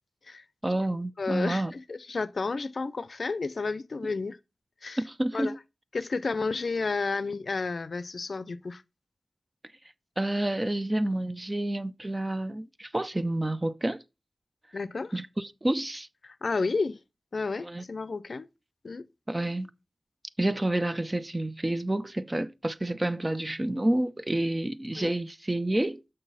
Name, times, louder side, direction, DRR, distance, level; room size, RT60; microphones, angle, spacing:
voice 1, 0.6-1.7 5.0-5.6 10.2-14.0 15.1-16.1 17.6-17.8 19.3-19.7 20.4-26.0, right 1 dB, 25° right, 0.5 m, -29 dB
voice 2, 1.2-4.4 4.8-5.0 5.3-5.5 5.9-8.8 14.7-15.1 16.2-17.0 17.3-18.5 18.8-19.1 24.9-25.1, left 4 dB, 70° left, 0.5 m, -31 dB
6.5 x 6.1 x 4.0 m
wide cardioid pair, 55°, 0 cm